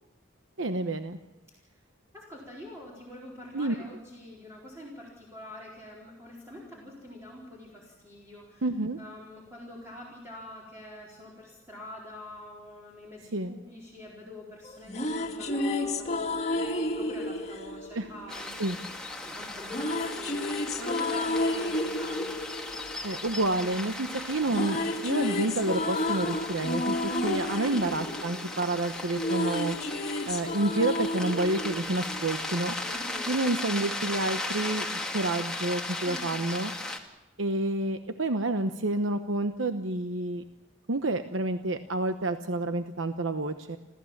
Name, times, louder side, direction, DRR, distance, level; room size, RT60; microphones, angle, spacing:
voice 1, 0.6-1.2 3.5-3.7 8.6-9.0 13.3-13.6 17.9-18.0 18.6-18.8 23.0-29.8 30.3-32.7 33.3-36.7 37.4-40.4 40.9-43.8, right 2 dB, 85° right, 8 dB, 1.0 m, -29 dB
voice 2, 2.1-8.6 9.0-18.5 19.2-22.3 27.5-27.8 32.8-33.4 36.0-36.4, left 1 dB, 15° right, -5 dB, 4.3 m, -45 dB
sound 1, 14.6-18.8 19.7-23.9 24.2-32.7, left 1 dB, 35° left, 2.1 m, -31 dB
sound 2, 18.3-37.0, left 2 dB, 5° left, 2.0 m, -37 dB
29.5 x 14.0 x 7.3 m, 1.0 s
head